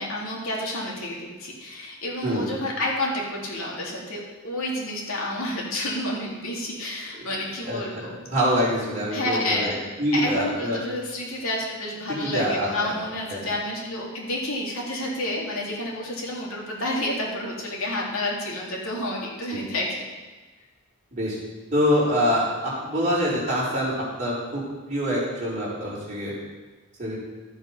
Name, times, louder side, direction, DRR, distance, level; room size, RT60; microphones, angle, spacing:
voice 1, 0.0-8.2 9.1-9.7 10.1-20.0, left 1 dB, 75° left, -3 dB, 2.8 m, -30 dB
voice 2, 7.6-10.8 12.2-12.9 13.3-13.5 19.5-19.6 21.1-21.4 21.7-26.3 27.0-27.2, equal, 35° right, -7 dB, 4.4 m, -25 dB
13.0 x 7.7 x 5.6 m, 1.3 s
head